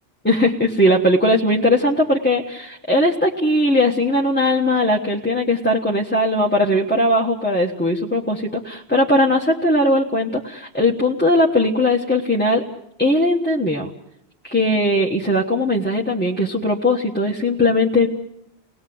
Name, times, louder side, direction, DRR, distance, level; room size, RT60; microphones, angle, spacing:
voice 1, 0.2-12.6 13.0-13.9 14.4-18.1, left 1 dB, 10° left, -2 dB, 1.2 m, -19 dB
29.5 x 19.5 x 7.8 m, 0.81 s
omnidirectional pair, 1.1 m